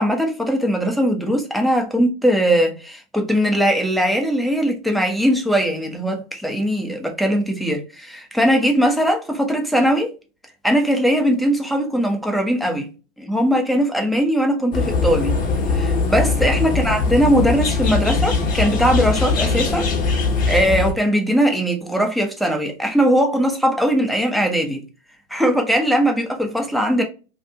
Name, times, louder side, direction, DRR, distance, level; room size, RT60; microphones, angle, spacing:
voice 1, 0.0-10.1 10.6-12.9 13.2-15.4 15.7-19.9 20.5-24.8 25.3-27.0, equal, ahead, 0.6 m, -20 dB
sound 1, 14.7-20.9, left 4 dB, 25° left, 0.9 m, -21 dB
2.8 x 2.5 x 3.3 m
hypercardioid pair, 110°, 31 cm